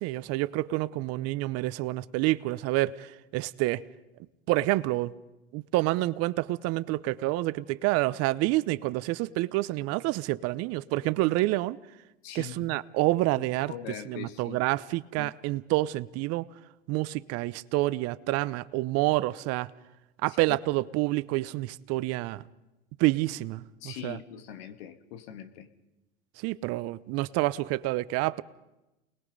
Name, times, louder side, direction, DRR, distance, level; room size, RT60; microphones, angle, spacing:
voice 1, 0.0-3.8 4.5-5.1 5.5-11.8 12.3-13.7 14.0-16.5 16.9-19.7 20.2-22.4 23.0-24.2 26.4-28.4, right 18 dB, 50° right, 0.8 m, -28 dB
voice 2, 12.2-12.7 13.4-14.6 15.2-15.6 20.3-20.6 23.8-25.7, left 10 dB, 65° left, 2.0 m, -42 dB
29.0 x 20.5 x 5.4 m
hypercardioid pair, 110°, 33 cm